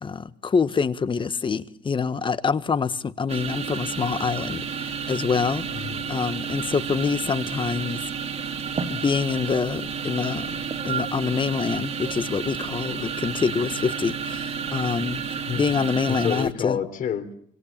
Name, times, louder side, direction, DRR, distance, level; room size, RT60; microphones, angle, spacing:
voice 1, 0.0-5.6 6.1-8.0 8.9-10.6 10.8-15.2 15.5-16.8, left 5 dB, 30° left, 1.3 m, -26 dB
sound 1, 3.3-16.5, right 6 dB, 40° right, 2.7 m, -31 dB
voice 2, 5.7-6.1 13.4-13.5 15.5-15.8 16.1-17.3, left 8 dB, 55° left, 3.7 m, -29 dB
27.0 x 25.0 x 7.4 m
cardioid pair, 110°, 17 cm